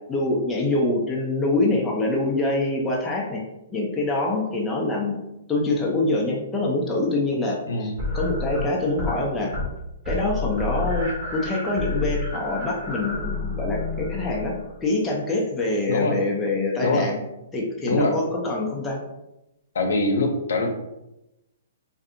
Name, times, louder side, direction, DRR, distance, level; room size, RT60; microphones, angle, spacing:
voice 1, 0.1-3.4 3.7-5.2 5.5-9.5 10.1-14.5 14.8-17.2 17.5-19.0, left 2 dB, 10° left, -3 dB, 0.4 m, -25 dB
sound 1, 8.0-9.2 9.5-9.8 10.1-14.8, left 3 dB, 40° right, 1.3 m, -29 dB
voice 2, 19.7-20.7, left 2 dB, 75° left, 3 dB, 0.6 m, -23 dB
2.6 x 2.4 x 2.5 m, 0.92 s
hypercardioid pair, 160°, 0 cm